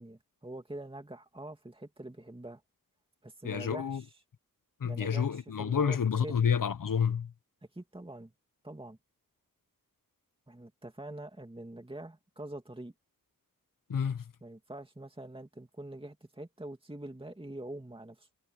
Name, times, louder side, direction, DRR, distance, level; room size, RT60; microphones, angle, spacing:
voice 1, 0.0-2.6 3.2-4.2 4.8-6.4 7.7-8.3 8.6-9.0 10.5-12.9 14.4-18.3, right 1 dB, 15° right, 2.5 m, -44 dB
voice 2, 3.4-4.0 4.8-7.3 13.9-14.2, left 7 dB, 65° left, 0.8 m, -29 dB
wide cardioid pair, 90°, 35 cm